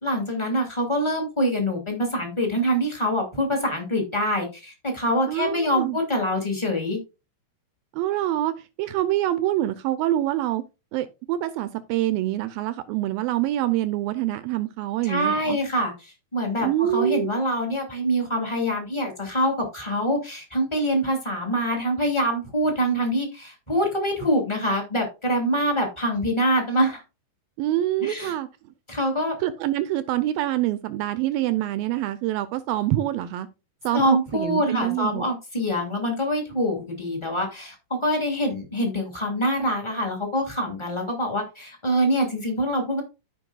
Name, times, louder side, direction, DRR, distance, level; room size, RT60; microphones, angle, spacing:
voice 1, 0.0-7.0 15.0-27.0 28.0-28.3 28.9-29.3 33.9-43.0, equal, 10° left, 1.3 m, -25 dB
voice 2, 5.3-6.0 8.0-8.5 8.8-10.6 10.9-15.6 16.6-17.3 27.6-28.5 29.4-33.5 33.8-35.3, right 14 dB, 80° right, 2.1 m, -25 dB
14.0 x 5.3 x 2.4 m
omnidirectional pair, 4.7 m